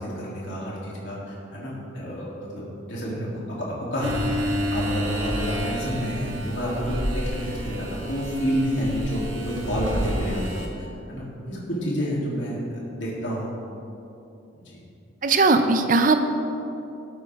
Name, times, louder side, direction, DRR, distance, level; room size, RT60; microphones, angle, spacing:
voice 1, 0.0-10.4 10.8-13.5 14.6-14.8, equal, 65° left, -6 dB, 3.3 m, -29 dB
sound 1, 4.0-10.7, equal, 70° right, 1.7 m, -30 dB
voice 2, 15.2-16.3, right 3 dB, 40° right, 7 dB, 0.7 m, -19 dB
19.0 x 8.5 x 3.6 m, 2.8 s
head